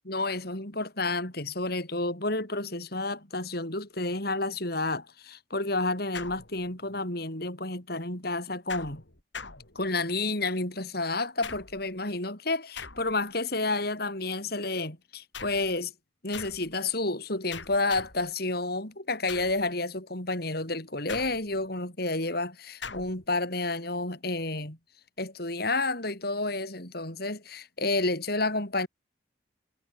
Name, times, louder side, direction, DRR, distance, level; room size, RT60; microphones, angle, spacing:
voice 1, 0.1-9.0 9.7-15.9 16.2-24.8 25.2-28.9, left 2 dB, 55° left, 4.9 m, -30 dB
sound 1, 6.1-7.0 8.7-10.2 11.4-12.0 12.8-13.4 15.3-15.8 16.3-16.7 17.5-18.3 19.3-19.7 21.1-21.7 22.8-23.2, left 5 dB, 70° left, 4.2 m, -42 dB
head